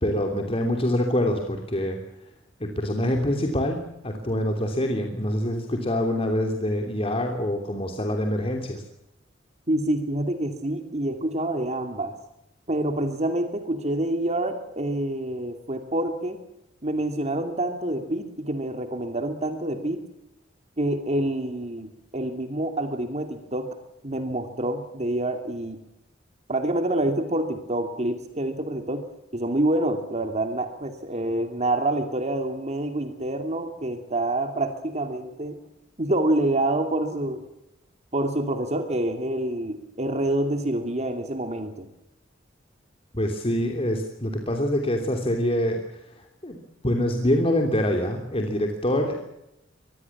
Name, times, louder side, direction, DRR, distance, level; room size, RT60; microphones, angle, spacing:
voice 1, 0.0-2.0 2.6-8.8 43.1-45.8 46.4-46.6 46.8-49.1, left 1 dB, 30° left, 3 dB, 3.0 m, -25 dB
voice 2, 9.7-12.2 12.7-16.4 16.8-20.0 20.8-23.7 24.0-25.8 26.5-29.0 29.3-35.6 36.0-37.4 38.1-41.9, right 1 dB, 35° right, 7 dB, 2.5 m, -27 dB
25.5 x 20.5 x 7.3 m, 0.85 s
head